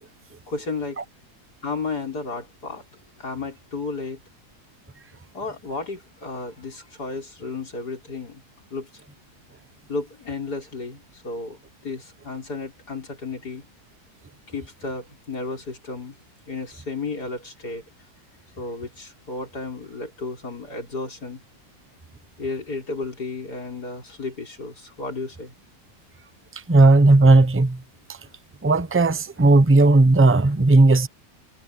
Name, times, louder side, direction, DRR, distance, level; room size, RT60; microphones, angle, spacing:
voice 1, 0.5-1.0 1.6-2.8 3.2-4.2 5.3-8.4 8.7-8.9 9.9-11.6 11.8-13.6 14.5-16.2 16.5-17.8 18.6-21.4 22.4-25.5, left 3 dB, 90° left, 6.0 m, -33 dB
voice 2, 26.7-27.8 28.6-31.1, right 2 dB, 15° right, 0.5 m, -15 dB
omnidirectional pair, 1.7 m